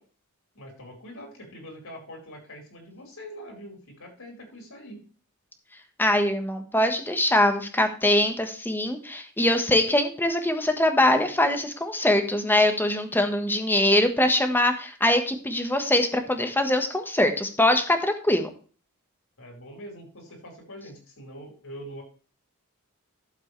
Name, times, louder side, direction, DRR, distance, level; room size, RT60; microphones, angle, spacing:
voice 1, 0.5-5.0 19.4-22.0, equal, 70° left, 1 dB, 4.7 m, -43 dB
voice 2, 6.0-18.5, left 1 dB, 10° left, 6 dB, 1.3 m, -23 dB
12.0 x 7.4 x 3.3 m, 0.40 s
head